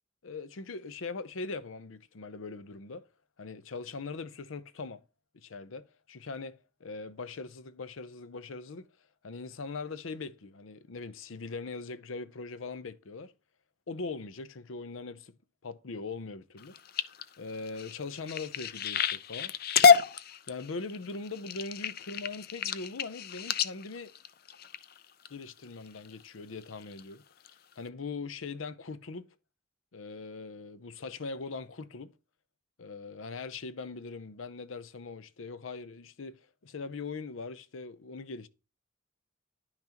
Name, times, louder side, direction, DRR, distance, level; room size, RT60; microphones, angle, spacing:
voice 1, 0.2-3.1 3.4-5.0 5.3-8.9 9.2-13.3 13.9-15.3 15.6-16.8 17.4-19.6 20.5-24.1 25.3-27.2 27.8-29.3 29.9-32.1 32.8-38.5, left 4 dB, 90° left, 0.6 m, -41 dB
sound 1, 16.6-25.3 25.9-26.2 26.6-27.0 27.4-27.5 27.9-28.0, left 6 dB, 50° left, 0.5 m, -28 dB
10.5 x 5.9 x 2.9 m
head